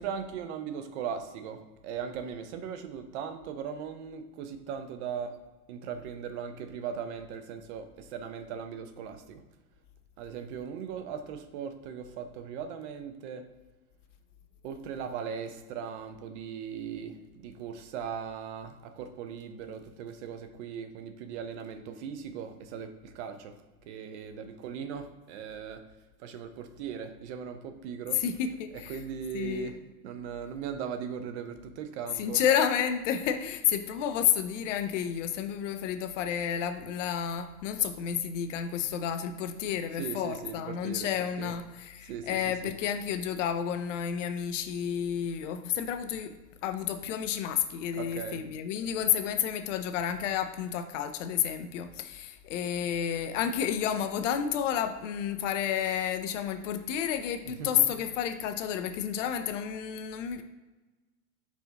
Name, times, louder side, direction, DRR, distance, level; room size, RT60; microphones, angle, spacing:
voice 1, 0.0-5.4 5.7-9.4 10.2-13.5 14.6-23.6 23.8-25.8 26.2-28.2 28.7-32.4 40.0-41.1 41.4-41.5 42.0-42.7 47.9-48.4 57.4-57.9, right 7 dB, 50° right, 9 dB, 0.6 m, -39 dB
voice 2, 28.1-29.0 29.3-29.7 32.2-60.4, left 9 dB, 55° left, 8 dB, 0.5 m, -30 dB
4.9 x 2.5 x 3.8 m, 1.2 s
hypercardioid pair, 115°, 47 cm